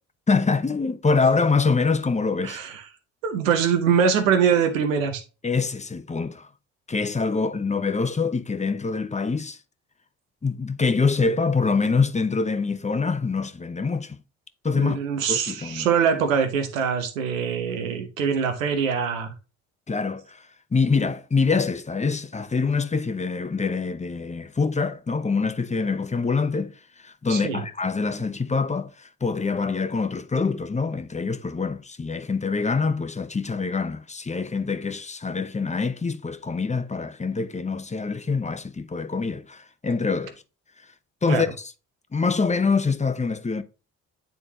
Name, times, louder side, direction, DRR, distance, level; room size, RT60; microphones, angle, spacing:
voice 1, 0.3-2.6 5.4-6.5 6.9-9.6 10.4-14.2 14.6-15.0 15.3-15.9 19.9-40.4 41.2-41.7 42.1-43.6, left 4 dB, 20° left, 0.8 m, -25 dB
voice 2, 2.4-2.8 3.2-5.2 14.7-19.3 27.3-27.6 41.3-41.4, right 7 dB, 90° right, 0.9 m, -23 dB
9.3 x 3.7 x 2.8 m
hypercardioid pair, 50°, 38 cm